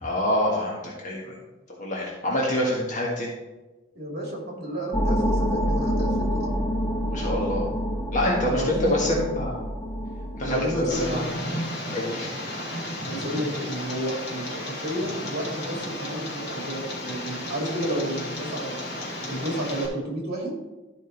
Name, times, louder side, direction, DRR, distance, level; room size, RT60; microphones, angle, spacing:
voice 1, 0.0-1.4 1.8-3.3 7.1-7.7 8.1-9.6 10.4-11.2 11.9-12.3, left 1 dB, 40° left, -3 dB, 1.5 m, -26 dB
voice 2, 3.9-6.6 8.5-9.0 10.4-11.4 13.0-18.8 19.2-20.6, right 1 dB, 55° right, 0 dB, 2.4 m, -31 dB
sound 1, 4.9-11.2, equal, 15° left, 1.0 m, -27 dB
Tick, 10.9-19.9, left 1 dB, 55° left, 2.2 m, -33 dB
12.5 x 5.3 x 3.9 m, 1.1 s
head